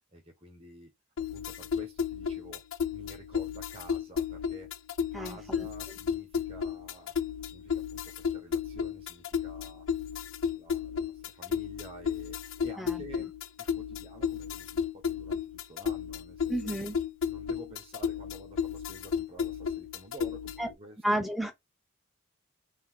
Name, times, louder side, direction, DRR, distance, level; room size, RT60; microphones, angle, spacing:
voice 1, 0.1-0.9 1.3-2.6 2.9-4.7 5.1-7.1 7.4-9.9 10.5-13.3 13.6-16.8 17.3-21.0, right 1 dB, 25° right, 1.2 m, -50 dB
sound 1, 1.2-20.7, left 7 dB, 60° left, 0.5 m, -33 dB
voice 2, 5.1-5.7 12.8-13.0 16.5-17.0 20.6-20.7 21.0-21.5, right 1 dB, ahead, 0.6 m, -31 dB
4.0 x 2.6 x 3.7 m
head